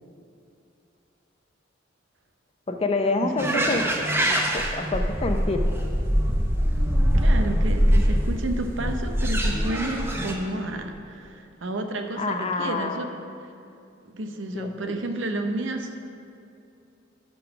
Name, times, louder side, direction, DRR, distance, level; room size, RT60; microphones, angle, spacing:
voice 1, 2.7-5.6 12.1-13.0 14.5-15.0, left 3 dB, 30° left, 5 dB, 0.5 m, -28 dB
voice 2, 3.2-3.7 7.1-13.1 14.1-16.0, right 1 dB, 70° right, 5 dB, 0.7 m, -31 dB
sound 1, 3.4-10.3, equal, 10° right, 0.8 m, -23 dB
11.5 x 3.8 x 5.9 m, 2.6 s
head